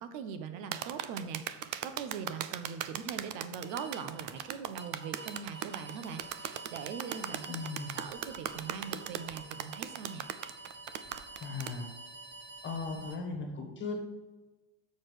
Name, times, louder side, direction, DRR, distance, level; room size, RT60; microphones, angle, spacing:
voice 1, 0.0-7.7 7.9-10.2, right 6 dB, 75° right, 9 dB, 0.9 m, -41 dB
sound 1, 0.7-13.2, right 3 dB, 20° right, 0.8 m, -49 dB
sound 2, 0.7-11.8, right 11 dB, 40° right, 0.4 m, -38 dB
voice 2, 7.5-8.0 11.4-11.9 12.6-14.0, left 4 dB, 25° left, 2 dB, 1.4 m, -37 dB
7.3 x 4.5 x 6.3 m, 1.2 s
cardioid pair, 150°, 49 cm